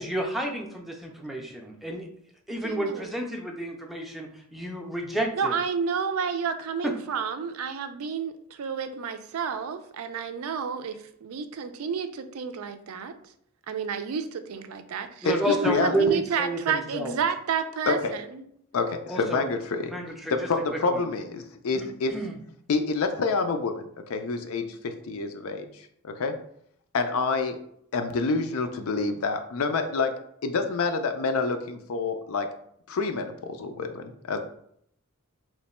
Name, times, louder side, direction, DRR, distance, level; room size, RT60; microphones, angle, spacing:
voice 1, 0.0-2.1 2.5-5.5 6.8-6.9 15.2-17.2 19.1-19.5 19.9-20.4 20.7-21.0 21.7-22.4, right 1 dB, ahead, 1 dB, 0.4 m, -30 dB
voice 2, 2.6-3.2 5.3-13.1 13.7-18.4, right 6 dB, 90° right, 9 dB, 0.4 m, -31 dB
voice 3, 15.2-16.2 17.9-18.1 18.7-19.9 20.3-22.1 22.7-26.3 26.9-27.6 27.9-30.1 30.4-32.5 32.9-34.4, left 4 dB, 85° left, 7 dB, 0.5 m, -27 dB
3.1 x 2.2 x 4.1 m, 0.69 s
head